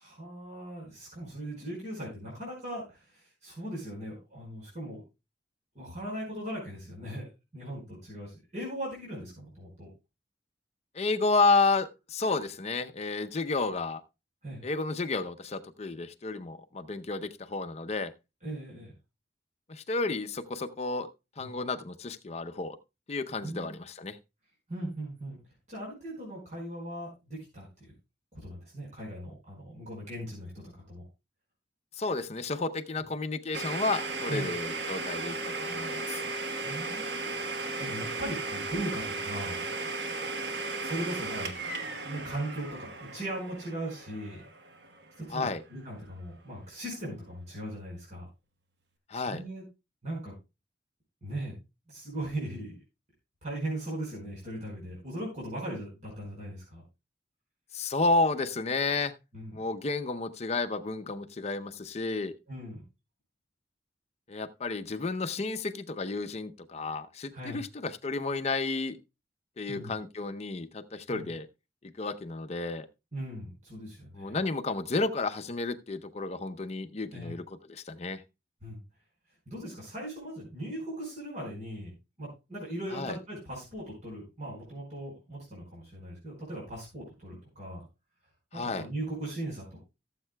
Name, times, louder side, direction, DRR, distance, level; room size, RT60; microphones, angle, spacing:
voice 1, 0.0-5.0 5.7-9.9 14.4-14.6 18.4-18.9 21.4-21.6 23.4-23.8 24.7-25.4 25.7-27.9 28.3-31.0 34.3-34.5 36.6-37.2 37.8-39.6 40.7-41.5 42.0-44.4 45.2-48.3 49.1-49.6 50.0-50.3 51.2-51.5 51.9-52.8 53.4-56.8 59.3-59.6 62.5-62.8 67.3-67.6 69.7-69.9 71.1-71.3 73.1-74.4 77.1-77.4 78.6-78.8 79.5-81.9 82.2-87.8 88.5-89.8, right 1 dB, 45° right, 4.8 m, -39 dB
voice 2, 10.9-14.0 14.6-18.1 19.7-21.1 21.4-22.8 23.1-24.2 32.0-36.2 45.3-45.6 49.1-49.4 57.7-59.1 59.5-62.3 64.3-69.0 69.6-71.5 71.8-72.9 74.1-78.2 82.9-83.2 88.5-88.9, left 3 dB, 40° left, 0.6 m, -31 dB
Domestic sounds home sounds, 33.5-45.2, right 3 dB, 70° right, 1.2 m, -36 dB
17.0 x 7.4 x 2.2 m
head